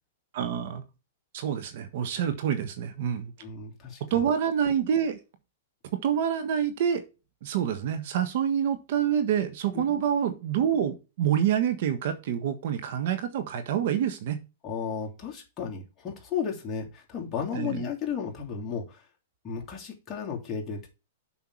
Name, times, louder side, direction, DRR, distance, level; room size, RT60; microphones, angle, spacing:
voice 1, 0.3-0.8 1.3-3.3 4.0-5.2 5.9-7.0 7.4-14.4 17.5-17.8, right 9 dB, 60° right, 1.4 m, -27 dB
voice 2, 3.4-4.3 9.7-10.0 14.6-19.1 19.4-20.9, left 7 dB, 25° left, 3.0 m, -34 dB
7.2 x 5.8 x 4.7 m
hypercardioid pair, 135°, 0 cm